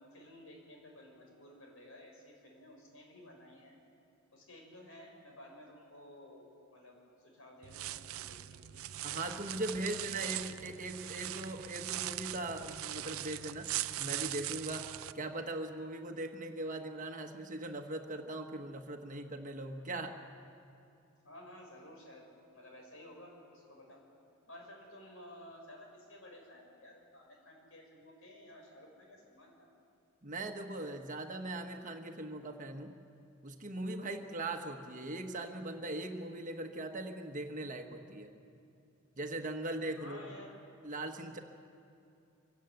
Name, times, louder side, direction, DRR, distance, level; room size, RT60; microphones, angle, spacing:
voice 1, 0.0-3.8 4.3-6.5 6.7-8.8 9.9-10.4 21.2-22.3 22.5-24.0 24.5-29.7 40.0-40.6, left 1 dB, 70° left, 0 dB, 5.3 m, -54 dB
sound 1, 7.6-15.1, right 13 dB, 80° right, 0.5 m, -40 dB
voice 2, 9.0-13.7 14.0-14.9 15.1-20.2 30.2-33.0 33.4-38.3 39.2-40.4 40.8-41.4, right 2 dB, 35° right, 5 dB, 1.4 m, -40 dB
24.5 x 17.0 x 7.9 m, 2.6 s
head